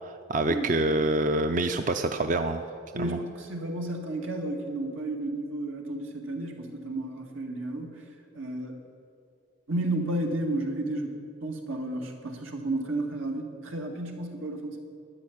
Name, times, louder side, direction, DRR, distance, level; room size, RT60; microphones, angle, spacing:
voice 1, 0.0-2.6 3.0-3.2, right 2 dB, 40° right, 7 dB, 0.5 m, -26 dB
voice 2, 2.9-8.1 8.3-8.8 9.7-11.2 11.4-14.8, right 1 dB, 90° right, 2 dB, 2.0 m, -32 dB
13.0 x 10.0 x 8.3 m, 2.3 s
head